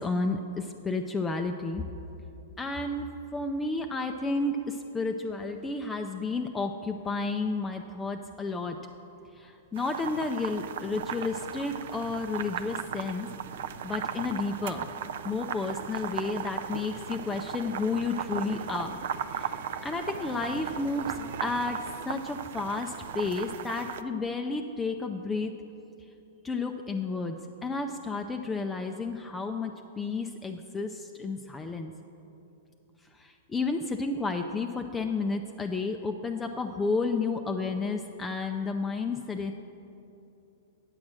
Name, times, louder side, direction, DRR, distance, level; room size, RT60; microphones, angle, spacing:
voice 1, 0.0-1.8 2.6-8.8 9.4-13.3 13.8-14.9 15.2-19.0 19.3-19.5 19.8-21.8 22.0-25.5 26.4-31.9 33.2-39.5, left 3 dB, 15° left, 5 dB, 0.4 m, -31 dB
sound 1, 3.2-5.3 5.6-5.7 6.2-6.3 6.6-6.7 7.0-22.1, right 3 dB, 45° right, 1.2 m, -51 dB
sound 2, 9.8-24.0, right 8 dB, 65° right, 0.4 m, -37 dB
8.7 x 7.2 x 6.2 m, 2.9 s
hypercardioid pair, 115°, 0 cm